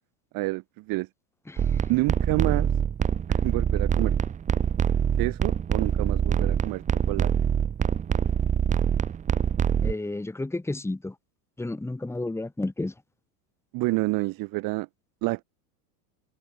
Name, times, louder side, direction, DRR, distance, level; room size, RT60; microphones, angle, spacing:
voice 1, 0.3-1.1 1.9-2.7 3.3-4.2 5.2-7.3 13.7-14.9 15.2-15.4, right 22 dB, 45° right, 3.5 m, -28 dB
sound 1, 1.6-9.9, right 8 dB, 15° right, 0.8 m, -24 dB
voice 2, 9.8-11.1 11.6-12.9, left 2 dB, 5° left, 4.1 m, -31 dB
supercardioid pair, 135°, 47 cm